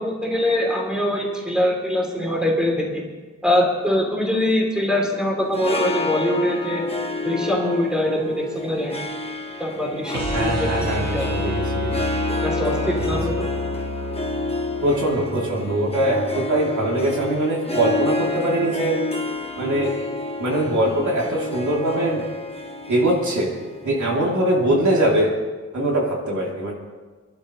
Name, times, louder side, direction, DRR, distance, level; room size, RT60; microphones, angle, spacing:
voice 1, 0.0-3.0 3.4-6.8 7.2-9.0 9.6-11.3 12.4-13.5, left 1 dB, 5° right, -2 dB, 3.3 m, -23 dB
Harp, 5.4-24.8, left 2 dB, 20° left, 1.2 m, -29 dB
sound 1, 10.1-16.2, left 1 dB, 65° right, 1.4 m, -29 dB
voice 2, 10.3-12.0 13.0-13.2 14.8-19.0 19.6-19.9 20.4-22.2 22.9-23.5 23.8-25.3 25.7-26.7, right 1 dB, 85° right, -3 dB, 3.4 m, -22 dB
26.5 x 11.5 x 3.3 m, 1.3 s
wide cardioid pair, 115°, 29 cm